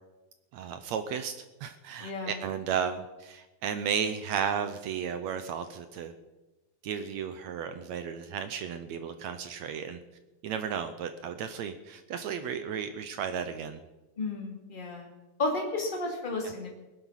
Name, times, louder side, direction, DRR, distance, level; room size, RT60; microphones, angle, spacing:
voice 1, 0.5-1.3 1.6-6.1 6.8-10.0 10.4-13.8 16.4-16.5, right 7 dB, 70° right, 9 dB, 1.8 m, -34 dB
voice 2, 2.0-2.4 14.2-15.1 15.4-16.7, left 2 dB, 15° left, 0 dB, 2.3 m, -32 dB
19.0 x 11.0 x 5.8 m, 1.1 s
omnidirectional pair, 3.8 m